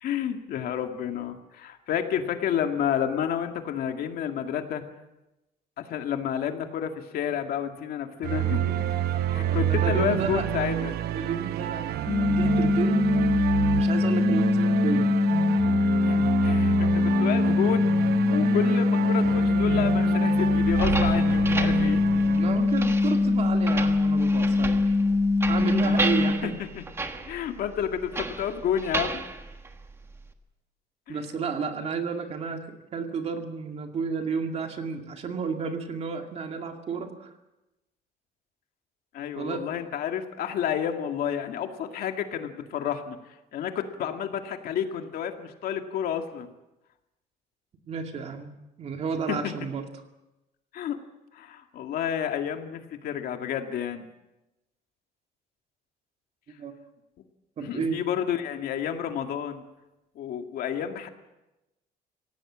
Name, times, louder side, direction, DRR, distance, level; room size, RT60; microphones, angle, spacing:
voice 1, 0.0-4.8 5.8-8.9 9.3-11.0 16.0-22.1 25.8-26.7 27.2-29.3 31.1-31.2 39.1-43.2 43.5-46.5 49.3-49.5 50.7-51.0 51.3-54.1 57.6-59.6 60.2-61.1, left 9 dB, 65° left, 5 dB, 2.2 m, -30 dB
sound 1, 8.2-22.7, right 12 dB, 70° right, 0.9 m, -29 dB
voice 2, 9.3-10.5 11.1-13.0 13.8-15.1 22.3-25.0 25.5-26.5 31.1-37.3 39.4-39.7 47.9-48.5 48.8-49.8 56.6-56.7 57.6-58.0, right 5 dB, 40° right, 5 dB, 2.2 m, -31 dB
sound 2, 12.1-26.3, left 3 dB, 15° left, 2.2 m, -23 dB
sound 3, 20.6-30.3, right 3 dB, 15° right, 1.4 m, -34 dB
26.5 x 17.0 x 7.5 m, 0.98 s
cardioid pair, 175°, 17 cm